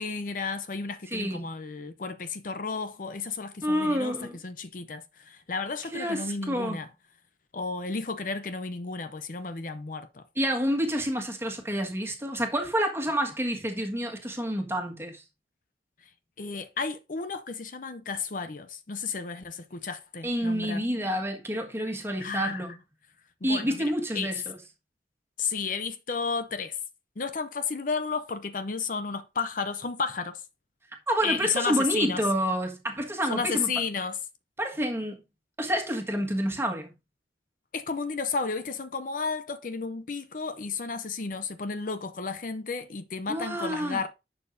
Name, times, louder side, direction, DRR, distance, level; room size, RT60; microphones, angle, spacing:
voice 1, 0.0-4.2 4.4-6.9 7.5-10.2 16.4-20.8 22.2-22.8 23.4-24.3 25.4-26.8 27.2-30.4 31.2-32.2 33.3-34.2 37.7-44.1, left 4 dB, 50° left, 0.6 m, -32 dB
voice 2, 1.1-1.5 3.6-4.4 5.9-6.8 10.3-15.2 20.2-22.7 23.4-24.4 31.1-33.7 34.6-35.2 35.6-36.9 43.3-44.0, equal, 15° right, 1.6 m, -28 dB
11.0 x 6.6 x 2.6 m
head